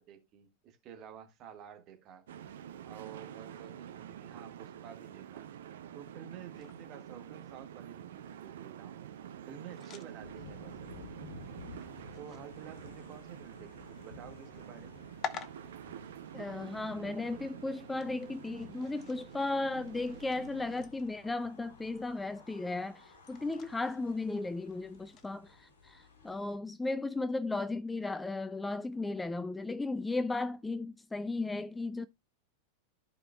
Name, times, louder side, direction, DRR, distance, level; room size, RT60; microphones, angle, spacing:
voice 1, 0.0-2.2 2.8-5.5 5.9-9.0 9.4-10.9 11.6-15.1, right 8 dB, 35° right, 1.7 m, -51 dB
sound 1, 2.3-20.9, right 10 dB, 60° right, 0.7 m, -48 dB
sound 2, 6.5-25.4, left 6 dB, 30° left, 0.9 m, -52 dB
sound 3, 10.2-26.6, left 3 dB, 60° left, 2.6 m, -54 dB
voice 2, 16.3-32.1, left 2 dB, 10° left, 0.3 m, -35 dB
14.5 x 4.9 x 2.2 m
figure-of-eight pair, 90°, 0 cm